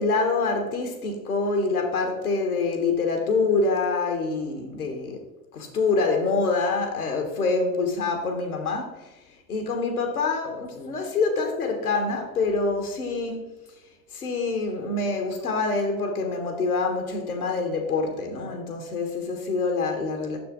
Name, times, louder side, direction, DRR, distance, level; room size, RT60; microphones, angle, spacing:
voice 1, 0.0-5.2 5.5-9.1 9.5-13.5 14.1-20.4, left 3 dB, 80° left, 1.4 m, -26 dB
6.8 x 6.6 x 3.7 m
figure-of-eight pair, 70°, 44 cm